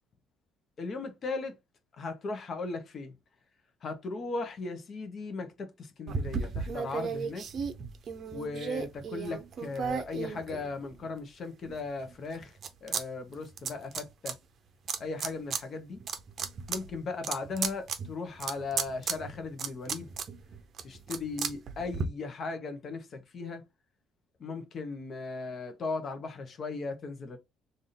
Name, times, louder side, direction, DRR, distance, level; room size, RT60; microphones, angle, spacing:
voice 1, 0.8-1.6 2.0-3.1 3.8-7.4 8.3-14.4 15.0-16.0 16.7-20.1 20.8-23.6 24.4-27.4, left 3 dB, 35° left, 1.0 m, -37 dB
sound 1, 6.1-11.1 11.6-13.0 13.3-14.3 14.9-15.6 16.0-22.0, right 6 dB, 40° right, 0.7 m, -35 dB
3.5 x 2.6 x 4.1 m
cardioid pair, 150°, 0 cm